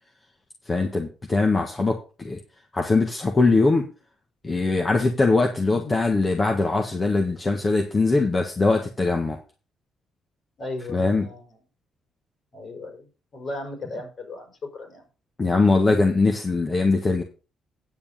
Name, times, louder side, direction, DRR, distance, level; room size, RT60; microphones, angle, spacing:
voice 1, 0.7-2.4 2.7-3.9 4.4-9.4 10.9-11.3 15.4-17.2, left 3 dB, 30° left, 3 dB, 1.6 m, -21 dB
voice 2, 5.7-6.1 10.6-11.6 12.5-15.0, left 2 dB, 50° left, 4 dB, 4.9 m, -36 dB
9.7 x 7.1 x 5.3 m, 0.33 s
cardioid pair, 90°, 0 cm